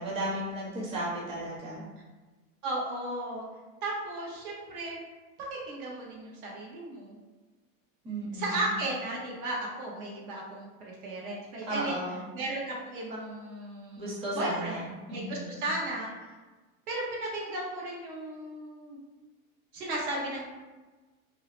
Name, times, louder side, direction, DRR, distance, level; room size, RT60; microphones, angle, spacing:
voice 1, 0.0-1.8 8.0-8.7 11.7-12.2 14.0-15.6, right 1 dB, 15° right, -6 dB, 0.5 m, -34 dB
voice 2, 2.6-3.5 3.8-5.0 5.4-7.2 8.3-12.0 12.3-14.8 15.1-16.1 16.9-19.0 19.7-20.5, right 2 dB, 80° right, -3 dB, 1.1 m, -35 dB
2.8 x 2.0 x 3.0 m, 1.2 s
supercardioid pair, 140°, 43 cm